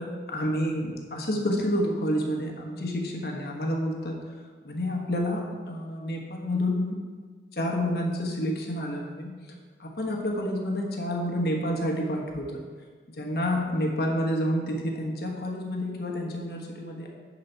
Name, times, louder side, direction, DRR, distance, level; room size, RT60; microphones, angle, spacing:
voice 1, 0.0-4.2 4.6-7.0 7.5-9.4 9.8-12.6 13.1-17.1, equal, 60° left, 0 dB, 1.2 m, -29 dB
11.5 x 4.1 x 4.5 m, 1.5 s
head